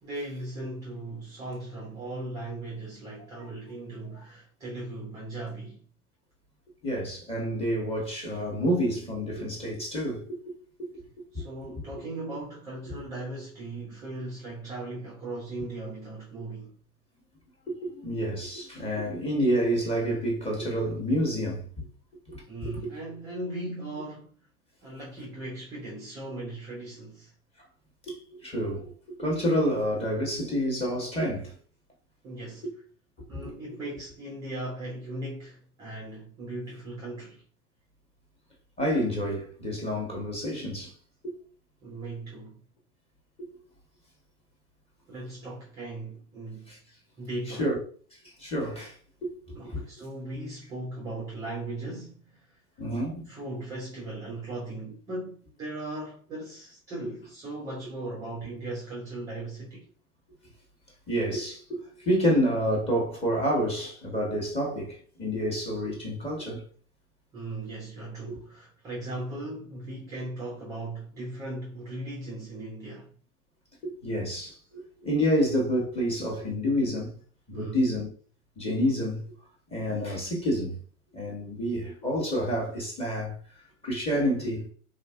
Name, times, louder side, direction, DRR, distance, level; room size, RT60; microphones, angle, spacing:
voice 1, 0.0-5.8 11.3-16.7 22.5-24.4 24.8-27.3 32.2-32.7 33.3-37.4 41.8-42.6 45.1-46.7 47.2-47.7 49.5-52.6 53.3-59.9 67.3-73.1 77.5-77.9, right 2 dB, 10° right, 0.4 m, -38 dB
voice 2, 6.8-11.0 11.3-11.5 12.9-13.0 17.7-21.7 22.3-22.9 28.1-31.6 33.2-33.4 38.8-40.9 41.2-41.3 43.4-43.6 46.7-46.8 47.5-47.8 48.4-48.9 49.2-49.8 52.8-53.3 61.1-66.6 68.3-68.4 73.8-77.1 77.5-78.1 78.6-79.2 79.7-80.8 81.1-83.4 83.8-84.7, equal, 15° left, 1.1 m, -29 dB
3.6 x 2.5 x 2.2 m
figure-of-eight pair, 95°, 44 cm